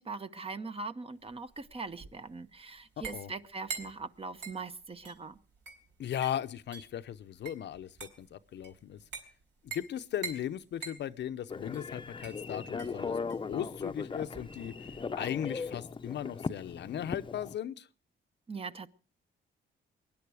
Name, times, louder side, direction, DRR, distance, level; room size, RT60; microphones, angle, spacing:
voice 1, 0.0-5.4 18.5-18.9, right 4 dB, 30° right, 0.9 m, -41 dB
sound 1, 1.2-15.2, right 5 dB, 65° right, 4.0 m, -47 dB
voice 2, 3.0-3.3 6.0-9.0 9.6-13.2 13.5-17.9, left 10 dB, 60° left, 0.7 m, -37 dB
Telephone, 11.5-17.6, left 4 dB, 25° left, 0.7 m, -38 dB
23.0 x 10.5 x 4.8 m
cardioid pair, 90°, 20 cm